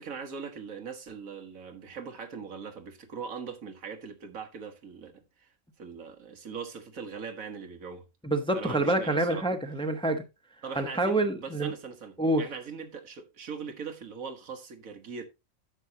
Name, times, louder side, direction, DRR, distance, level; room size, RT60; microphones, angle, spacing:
voice 1, 0.0-5.5 5.8-8.0 8.5-9.5 10.6-15.2, right 6 dB, 90° right, 1.7 m, -41 dB
voice 2, 8.2-10.2 10.7-11.7 12.2-12.4, right 2 dB, 5° left, 0.9 m, -27 dB
10.0 x 7.5 x 2.8 m
omnidirectional pair, 1.4 m